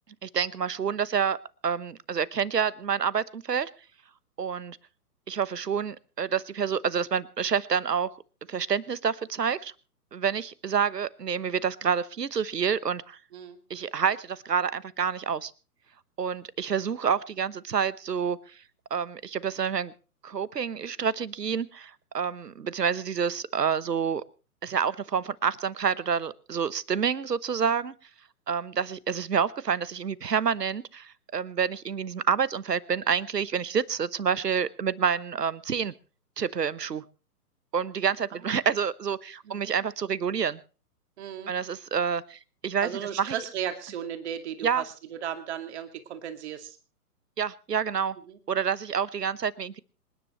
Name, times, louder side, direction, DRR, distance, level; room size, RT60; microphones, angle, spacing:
voice 1, 0.2-1.4 1.6-3.7 4.4-4.8 5.3-8.1 8.5-9.7 10.1-13.2 13.7-15.5 16.2-18.4 18.9-19.9 20.2-24.2 24.6-27.9 28.5-35.9 36.4-37.0 37.7-40.6 41.5-42.9 43.2-43.3 44.6-44.8 47.4-48.2 48.5-49.8, right 7 dB, 80° right, 19 dB, 1.1 m, -28 dB
voice 2, 41.2-41.5 42.8-46.8 48.3-48.4, right 9 dB, 45° right, 7 dB, 2.5 m, -35 dB
27.0 x 10.5 x 3.1 m, 0.36 s
figure-of-eight pair, 125°, 48 cm